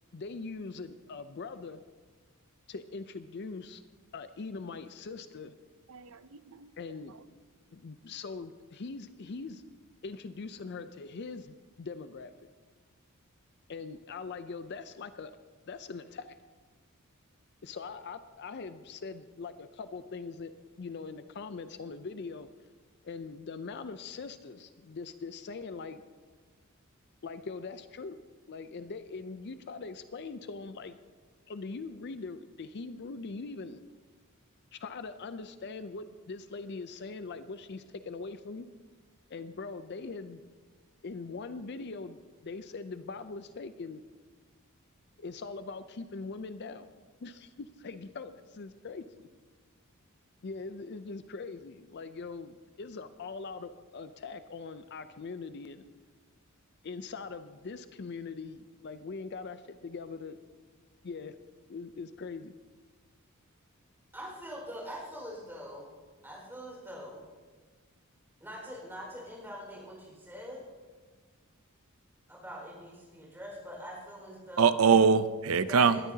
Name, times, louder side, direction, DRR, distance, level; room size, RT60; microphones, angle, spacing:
voice 1, 0.1-1.8 2.7-3.8 4.1-5.6 6.8-7.1 7.7-9.6 10.0-12.3 13.7-15.4 15.7-16.4 17.6-20.5 20.8-22.5 23.0-26.0 27.2-31.0 31.5-33.8 34.7-38.7 39.3-40.4 41.0-44.0 45.2-46.9 47.2-49.0 50.4-55.9 56.8-60.4 61.0-61.4 61.7-62.5, left 4 dB, 50° left, 11 dB, 0.5 m, -42 dB
voice 2, 5.9-6.7 74.6-76.0, right 6 dB, 75° right, 13 dB, 0.6 m, -24 dB
voice 3, 64.1-65.9 66.2-67.2 68.4-70.6 72.3-74.9 75.7-76.0, equal, 10° right, -3 dB, 4.8 m, -43 dB
20.0 x 13.0 x 2.8 m, 1.4 s
head